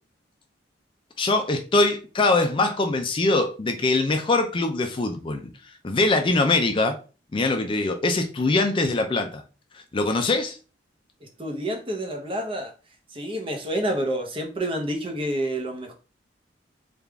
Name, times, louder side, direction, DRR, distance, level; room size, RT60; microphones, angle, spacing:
voice 1, 1.2-5.4 5.8-7.0 7.3-9.4 9.9-10.6, left 2 dB, 30° left, 0.4 m, -22 dB
voice 2, 11.2-12.7 13.1-15.9, right 1 dB, 30° right, 0.7 m, -28 dB
3.5 x 2.4 x 3.3 m
head